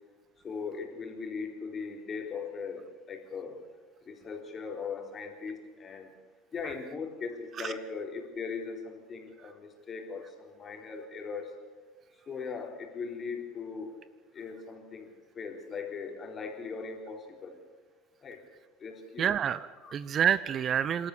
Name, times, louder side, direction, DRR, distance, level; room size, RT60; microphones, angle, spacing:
voice 1, 0.4-3.6 4.0-6.1 6.5-11.5 12.3-13.9 14.3-17.6 18.2-18.4 18.8-19.3 19.8-19.9, left 5 dB, 30° left, 3 dB, 4.0 m, -39 dB
voice 2, 19.2-21.1, right 8 dB, 35° right, 16 dB, 0.7 m, -28 dB
27.5 x 13.0 x 8.5 m, 1.3 s
figure-of-eight pair, 75°, 0 cm